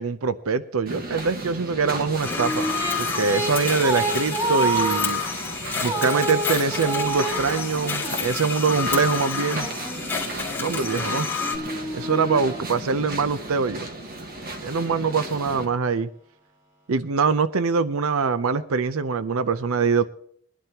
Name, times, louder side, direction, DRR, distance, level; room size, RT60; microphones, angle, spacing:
voice 1, 0.0-2.7 3.0-5.2 5.8-9.7 10.6-11.3 11.9-13.9 14.6-16.1 16.9-20.0, right 5 dB, 85° right, 12 dB, 0.6 m, -23 dB
sound 1, 0.9-15.7, right 1 dB, 45° right, 1.6 m, -35 dB
Female singing, 1.9-8.9 9.5-13.3, right 2 dB, 15° right, 4.9 m, -30 dB
sound 2, 2.2-11.6, left 5 dB, 10° left, 2.5 m, -29 dB
21.0 x 11.5 x 2.9 m, 0.62 s
head